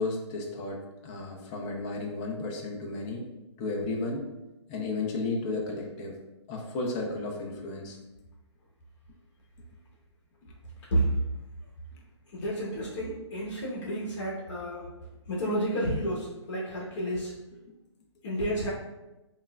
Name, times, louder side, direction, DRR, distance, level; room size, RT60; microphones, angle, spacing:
voice 1, 0.0-3.3 3.6-4.3 4.7-6.2 6.5-8.0, left 3 dB, 20° left, 0 dB, 0.5 m, -33 dB
voice 2, 12.3-14.9 15.3-17.3 18.2-18.7, right 1 dB, 45° left, -5 dB, 1.0 m, -30 dB
5.3 x 2.4 x 2.3 m, 1.0 s
hypercardioid pair, 145°, 15 cm